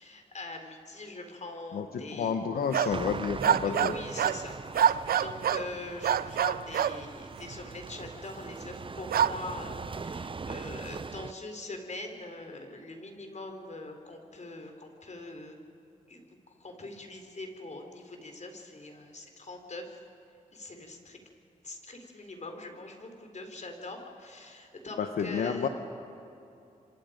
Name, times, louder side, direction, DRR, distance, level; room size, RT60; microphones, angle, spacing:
voice 1, 0.0-2.4 3.6-15.6 15.8-20.0 20.5-21.2 21.6-25.7, left 2 dB, 50° left, 4 dB, 4.2 m, -43 dB
voice 2, 1.7-3.9 25.0-25.7, left 6 dB, 85° left, 7 dB, 1.0 m, -30 dB
sound 1, 2.6-3.0 3.4-4.4 4.7-5.7 6.0-7.0 9.1-9.4, right 9 dB, 80° right, 0.6 m, -26 dB
sound 2, 2.9-11.3, right 4 dB, 35° right, 0.6 m, -41 dB
29.5 x 25.0 x 5.2 m, 2.7 s
cardioid pair, 50°, 15 cm